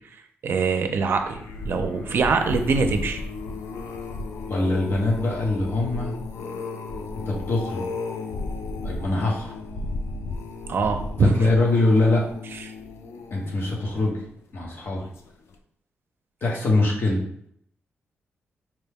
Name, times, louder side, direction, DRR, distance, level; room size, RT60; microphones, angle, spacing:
voice 1, 0.4-3.2 10.7-11.3, right 4 dB, 60° right, 6 dB, 0.5 m, -23 dB
sound 1, 1.1-14.4 15.0-15.3 15.5-15.6, left 3 dB, 80° left, 0.4 m, -34 dB
voice 2, 4.5-6.1 7.2-7.8 8.8-9.5 11.2-12.3 13.3-14.2 14.5-15.0 16.4-17.2, left 2 dB, 55° left, -1 dB, 1.0 m, -23 dB
4.4 x 2.2 x 3.4 m, 0.69 s
wide cardioid pair, 130°, 4 cm